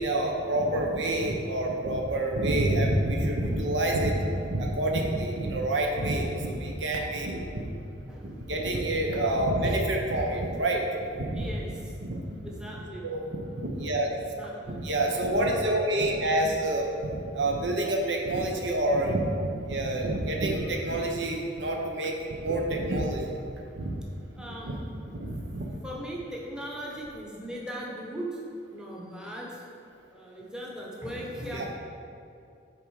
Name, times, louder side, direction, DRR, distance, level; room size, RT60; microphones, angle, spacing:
voice 1, 0.0-7.7 8.2-11.5 12.0-12.4 13.0-14.1 14.6-23.3 23.8-24.0 24.6-24.8 25.2-25.7 31.5-31.6, right 1 dB, 70° right, 1 dB, 0.8 m, -28 dB
voice 2, 8.1-8.4 9.7-9.8 11.3-11.9 12.4-13.1 14.2-14.9 24.4-25.2 25.8-28.4 28.7-29.6 30.1-31.6, equal, 5° right, -3 dB, 0.9 m, -39 dB
8.5 x 3.7 x 4.7 m, 2.5 s
head